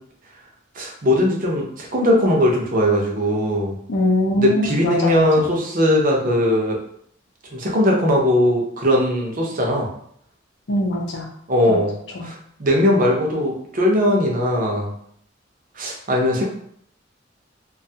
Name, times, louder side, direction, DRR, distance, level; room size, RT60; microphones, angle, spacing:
voice 1, 0.8-3.8 4.4-6.8 7.5-9.9 11.5-14.9 15.8-16.5, left 1 dB, 45° right, -1 dB, 0.6 m, -19 dB
voice 2, 3.9-5.3 10.7-11.2 11.7-11.8 12.2-12.3, left 1 dB, 60° left, 1 dB, 0.6 m, -22 dB
2.5 x 2.3 x 2.7 m, 0.66 s
head